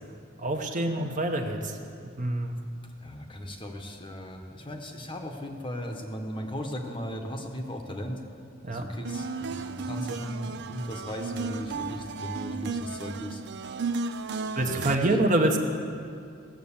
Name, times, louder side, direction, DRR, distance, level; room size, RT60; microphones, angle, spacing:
voice 1, 0.4-1.8 2.2-2.6 8.6-8.8 14.5-15.6, right 1 dB, 35° right, 3 dB, 1.0 m, -26 dB
voice 2, 3.0-8.2 8.7-13.4 14.6-14.9, equal, 25° left, 3 dB, 1.0 m, -37 dB
sound 1, 9.0-15.0, right 4 dB, 55° right, 0.5 m, -34 dB
16.5 x 7.6 x 7.1 m, 2.3 s
head